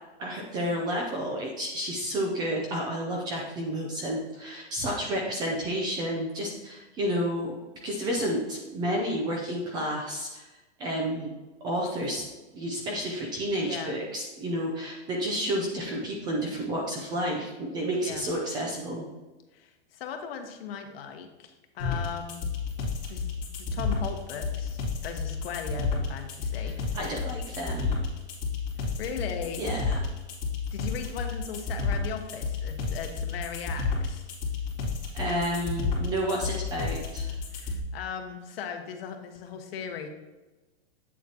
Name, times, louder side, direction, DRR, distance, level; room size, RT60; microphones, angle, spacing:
voice 1, 0.2-7.6 7.8-10.5 10.8-11.3 11.6-12.2 12.5-19.1 26.6-28.0 29.6-30.0 35.1-37.3, equal, 15° right, 0 dB, 0.4 m, -31 dB
voice 2, 13.6-13.9 18.0-18.2 19.5-22.5 23.1-23.3 23.7-26.7 29.0-29.6 30.7-34.3 37.5-40.1, left 7 dB, 60° left, 5 dB, 1.2 m, -38 dB
sound 1, 21.8-37.8, left 4 dB, 20° left, 2.3 m, -31 dB
8.4 x 7.2 x 2.8 m, 1.2 s
supercardioid pair, 165°, 34 cm